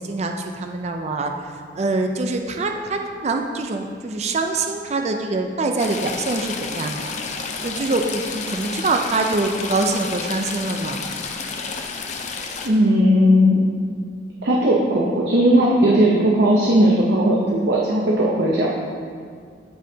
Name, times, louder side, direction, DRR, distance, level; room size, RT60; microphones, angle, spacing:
voice 1, 0.0-1.3 1.8-7.2 7.6-11.0 17.5-17.7, right 3 dB, 40° right, 4 dB, 0.4 m, -24 dB
Stream / Trickle dribble, 5.8-12.7, left 4 dB, 40° left, 0.6 m, -30 dB
voice 2, 12.6-13.6 14.4-18.7, equal, 75° right, -3 dB, 0.8 m, -17 dB
12.5 x 5.6 x 2.8 m, 2.1 s
head